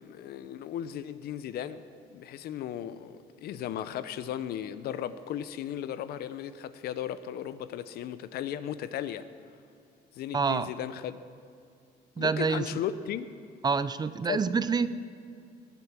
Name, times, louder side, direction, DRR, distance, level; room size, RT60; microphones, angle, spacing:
voice 1, 0.0-9.3 10.1-11.2 12.2-13.3 14.2-14.4, left 10 dB, 70° left, 14 dB, 0.6 m, -36 dB
voice 2, 10.3-10.7 12.2-12.6 13.6-15.0, right 5 dB, 25° right, 14 dB, 0.5 m, -27 dB
19.5 x 8.2 x 6.0 m, 2.3 s
cardioid pair, 110°, 17 cm